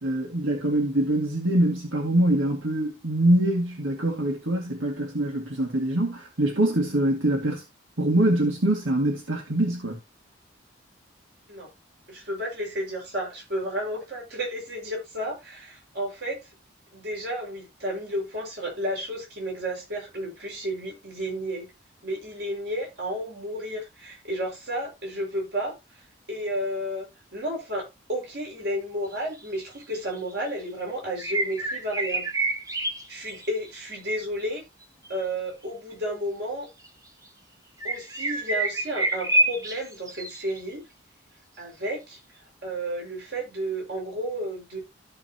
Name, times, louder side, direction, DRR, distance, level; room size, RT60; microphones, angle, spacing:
voice 1, 0.0-7.6 8.0-10.0, right 1 dB, 85° right, 2.1 m, -24 dB
voice 2, 12.1-16.5 16.9-21.7 22.0-25.7 26.3-27.1 27.3-32.3 33.1-34.6 35.1-36.7 37.8-40.8 41.6-42.2 42.6-44.8, equal, 55° right, 5.7 m, -32 dB
sound 1, 29.1-29.2 29.9-30.2 31.2-33.7 35.1-35.2 36.8-36.9 37.8-40.6, right 2 dB, 15° right, 1.0 m, -27 dB
15.0 x 5.6 x 2.9 m
head